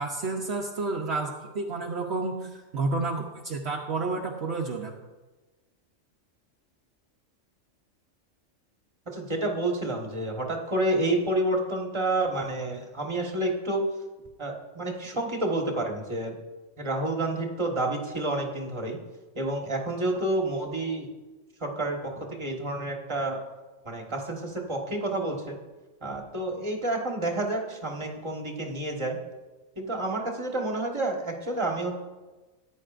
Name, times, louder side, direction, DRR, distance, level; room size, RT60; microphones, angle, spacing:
voice 1, 0.0-4.9, right 3 dB, 60° right, 1 dB, 1.0 m, -30 dB
voice 2, 9.1-13.9 14.4-16.3 16.8-19.0 19.3-21.1 21.6-23.4 23.8-25.6 26.0-29.2 29.8-32.0, right 2 dB, 25° right, 1 dB, 1.4 m, -29 dB
13.5 x 9.7 x 2.5 m, 1.2 s
omnidirectional pair, 1.3 m